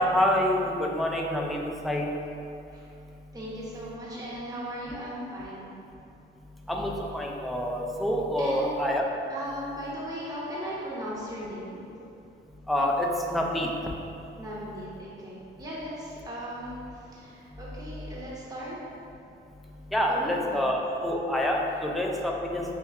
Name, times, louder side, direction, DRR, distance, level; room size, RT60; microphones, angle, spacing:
voice 1, 0.0-2.1 6.7-9.0 12.7-13.7 19.9-22.6, left 1 dB, ahead, -1 dB, 0.5 m, -27 dB
voice 2, 3.3-5.7 8.4-8.8 9.3-11.8 14.4-18.8 20.1-20.6, equal, 20° right, -7 dB, 0.9 m, -37 dB
5.5 x 3.0 x 2.3 m, 2.6 s
cardioid pair, 90°, 20 cm